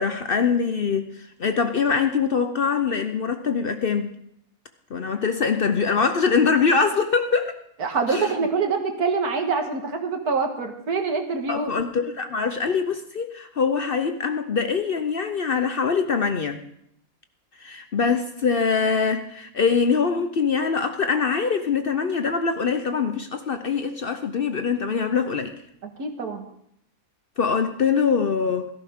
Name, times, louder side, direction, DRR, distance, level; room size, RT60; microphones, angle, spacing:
voice 1, 0.0-4.1 4.9-7.6 8.1-8.3 11.5-16.6 17.6-25.6 27.4-28.7, left 5 dB, 50° left, 8 dB, 0.7 m, -23 dB
voice 2, 7.8-11.7 26.0-26.4, right 4 dB, 90° right, 4 dB, 2.1 m, -25 dB
16.0 x 13.5 x 3.6 m, 0.72 s
omnidirectional pair, 1.6 m